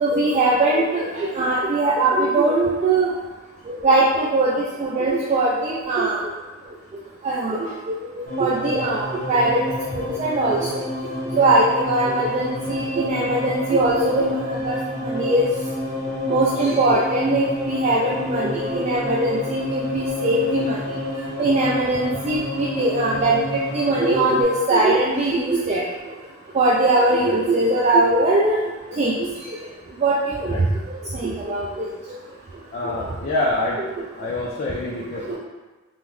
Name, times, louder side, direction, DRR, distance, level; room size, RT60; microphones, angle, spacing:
voice 1, 0.0-3.1 3.8-6.2 7.2-8.0 8.4-9.6 9.9-10.7 11.3-14.8 15.0-15.4 16.3-20.8 21.4-23.4 23.7-25.8 26.5-28.6 29.0-29.1 30.0-30.5 30.9-31.9 33.8-33.9 35.3-35.4, right 2 dB, 35° right, -5 dB, 0.3 m, -21 dB
sound 1, 8.3-24.4, left 1 dB, 75° right, 1.0 m, -29 dB
voice 2, 32.7-33.8 34.2-35.4, left 2 dB, 40° left, -5 dB, 0.4 m, -26 dB
3.4 x 2.1 x 3.1 m, 1.2 s
head